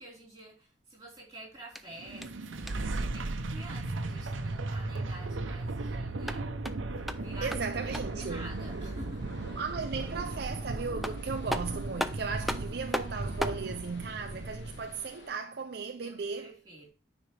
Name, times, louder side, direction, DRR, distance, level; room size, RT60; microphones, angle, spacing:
voice 1, 0.0-6.5 6.9-9.2 16.0-16.9, right 1 dB, 20° right, 4.1 m, -49 dB
sound 1, 1.6-3.0 6.0-8.3 10.6-10.7 11.0-13.7, equal, ahead, 0.4 m, -37 dB
sound 2, 1.9-15.0, right 2 dB, 90° right, 0.8 m, -36 dB
sound 3, 7.0-15.3, left 2 dB, 65° left, 1.3 m, -53 dB
voice 2, 7.4-8.5 9.6-16.6, right 5 dB, 55° right, 0.5 m, -36 dB
9.8 x 5.0 x 3.3 m
head